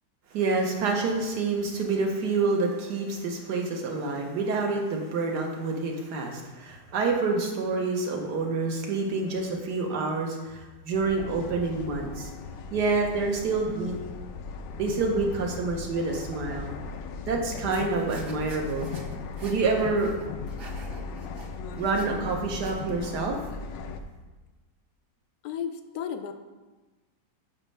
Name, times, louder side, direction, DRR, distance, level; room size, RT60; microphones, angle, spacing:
voice 1, 0.3-12.3 12.7-14.0 14.8-16.7 17.3-18.9 19.4-20.1 21.8-23.4, right 3 dB, 70° right, 2 dB, 1.6 m, -27 dB
sound 1, 10.9-24.0, left 5 dB, 85° left, 1.3 m, -38 dB
sound 2, 17.7-22.9, right 2 dB, 40° right, 1.0 m, -46 dB
voice 2, 25.4-26.3, left 8 dB, 70° left, 8 dB, 1.0 m, -33 dB
10.5 x 6.5 x 3.3 m, 1.2 s
omnidirectional pair, 1.9 m